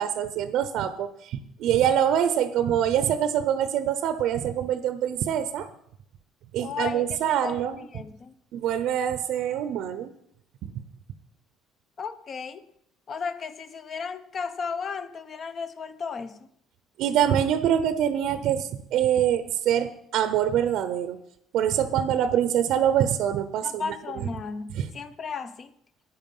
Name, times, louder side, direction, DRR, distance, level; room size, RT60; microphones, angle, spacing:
voice 1, 0.0-5.7 6.5-7.9 8.5-10.1 10.6-10.7 17.0-21.2 21.5-24.3 24.8-24.9, right 10 dB, 65° right, 12 dB, 0.7 m, -25 dB
voice 2, 6.6-8.3 12.0-12.6 13.1-16.4 23.6-25.7, left 5 dB, 35° left, 13 dB, 0.8 m, -35 dB
12.5 x 9.3 x 5.4 m, 0.72 s
cardioid pair, 145°, 0 cm